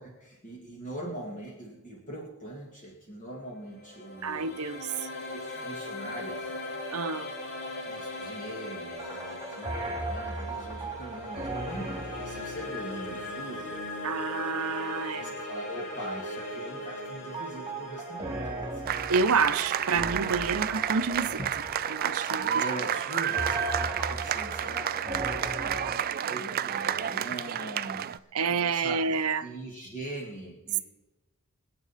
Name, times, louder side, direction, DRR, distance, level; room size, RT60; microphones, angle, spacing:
voice 1, 0.0-4.6 5.2-6.6 7.9-13.8 14.4-14.5 15.2-19.4 21.7-21.9 22.2-29.1 29.4-30.8, right 1 dB, 35° left, 1.9 m, -42 dB
sound 1, 3.6-20.7, left 1 dB, 60° left, 3.5 m, -39 dB
voice 2, 4.2-5.1 6.9-7.3 14.0-15.3 19.1-21.4 21.9-22.6 28.3-29.4, right 5 dB, 75° right, 0.7 m, -28 dB
sound 2, 9.0-13.9 17.3-26.0, right 2 dB, 15° right, 2.0 m, -37 dB
sound 3, 18.9-28.2, right 9 dB, 40° right, 0.4 m, -31 dB
24.5 x 8.4 x 4.2 m
head